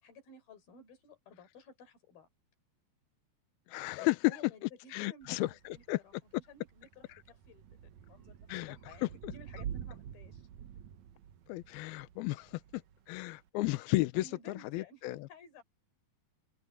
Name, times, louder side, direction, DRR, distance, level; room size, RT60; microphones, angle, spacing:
voice 1, 0.0-2.3 4.0-10.4 14.2-15.6, left 3 dB, 65° left, 5.7 m, -55 dB
voice 2, 3.7-5.5 5.9-6.0 7.1-7.2 8.5-8.8 9.0-9.3 11.5-12.8 13.1-15.3, left 20 dB, 80° left, 2.4 m, -33 dB
Thunder / Rain, 5.2-13.5, right 9 dB, 85° right, 1.6 m, -48 dB
omnidirectional pair, 4.7 m